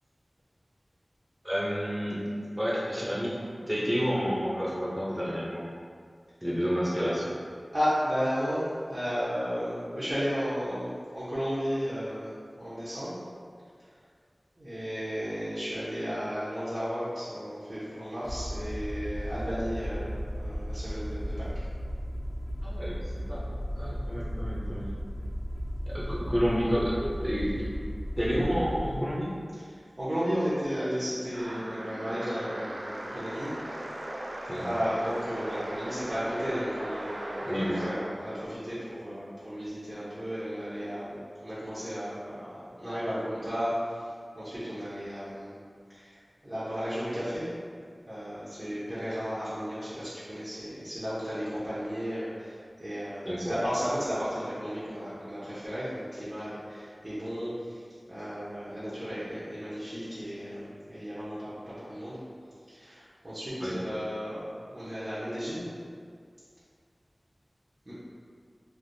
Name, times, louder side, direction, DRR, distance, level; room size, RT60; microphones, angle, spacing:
voice 1, 1.4-2.2 2.6-5.7 6.4-7.3 22.6-23.5 23.7-24.9 25.9-27.7 28.2-29.3 34.5-34.7 37.4-37.8 53.2-53.6 63.6-63.8, equal, 5° right, -7 dB, 0.6 m, -30 dB
voice 2, 7.7-13.2 14.6-21.5 29.7-34.0 34.5-44.1 44.3-45.5 45.9-46.2 46.4-47.5 48.1-57.8 58.1-62.2 62.7-64.4 64.7-65.7 67.9-68.0, equal, 45° right, -12 dB, 0.8 m, -34 dB
Aircraft, 18.2-28.9, equal, 75° left, 0.6 m, -35 dB
sound 1, 31.3-38.1, right 1 dB, 65° right, 0.3 m, -38 dB
3.3 x 2.5 x 2.6 m, 2.1 s
wide cardioid pair, 50°, 0 cm